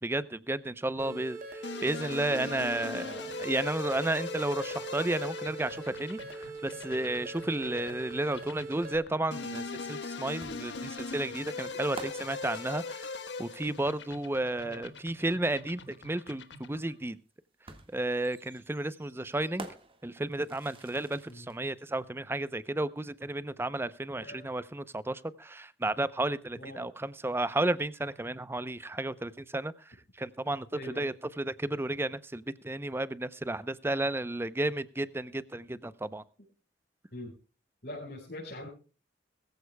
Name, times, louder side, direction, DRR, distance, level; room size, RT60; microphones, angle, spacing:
voice 1, 0.0-13.1 13.4-17.2 17.9-19.7 20.0-36.2, right 1 dB, 15° right, 15 dB, 0.6 m, -33 dB
sound 1, 1.0-9.0, right 3 dB, 50° right, 3.0 m, -42 dB
sound 2, 1.6-17.0, left 3 dB, 80° left, 1.4 m, -41 dB
sound 3, 10.4-14.1 15.5-15.6 17.7-21.6, right 2 dB, 30° right, 1.7 m, -49 dB
voice 2, 26.6-26.9 30.7-31.1 37.1-37.3 37.8-38.7, left 1 dB, 60° left, -5 dB, 5.3 m, -43 dB
21.0 x 14.5 x 2.2 m, 0.34 s
head